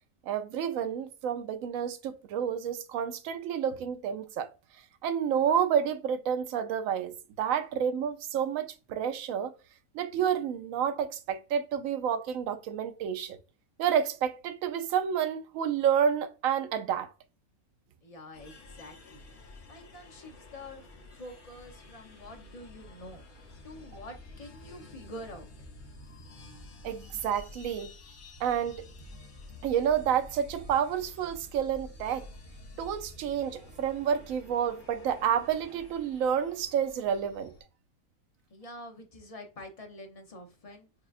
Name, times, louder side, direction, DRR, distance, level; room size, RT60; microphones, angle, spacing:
voice 1, 0.3-4.5 5.0-9.5 9.9-13.4 13.8-17.1 26.8-27.9 28.4-28.9 29.6-32.3 32.8-37.5, right 8 dB, 70° right, 1.0 m, -29 dB
voice 2, 18.0-19.2 19.7-23.2 23.6-25.7 38.5-40.9, left 1 dB, 35° left, 0.7 m, -47 dB
sound 1, 18.3-37.6, left 2 dB, 80° left, 1.6 m, -50 dB
6.3 x 2.4 x 2.4 m
omnidirectional pair, 1.6 m